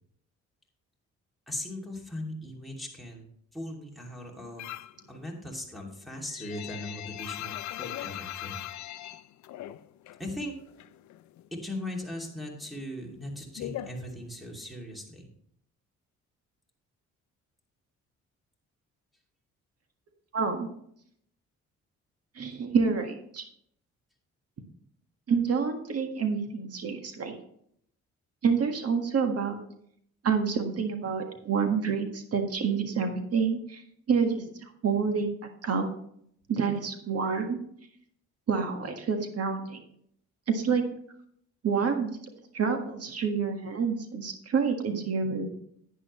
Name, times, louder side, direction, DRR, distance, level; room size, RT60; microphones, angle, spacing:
voice 1, 1.5-4.7 5.1-8.6 10.2-10.5 11.6-15.3, left 1 dB, ahead, -2 dB, 2.7 m, -39 dB
sound 1, 4.6-5.0 5.4-10.3 10.5-11.6 11.9-14.7, left 13 dB, 70° left, 0.5 m, -40 dB
voice 2, 20.3-20.7 22.4-23.5 25.3-27.3 28.4-29.6 30.2-33.8 34.1-35.3 35.6-35.9 36.5-37.6 38.5-39.8 40.5-40.8 41.6-42.1 42.5-45.6, right 5 dB, 55° right, 5 dB, 1.7 m, -28 dB
11.0 x 9.2 x 3.1 m, 0.69 s
cardioid pair, 90°, 30 cm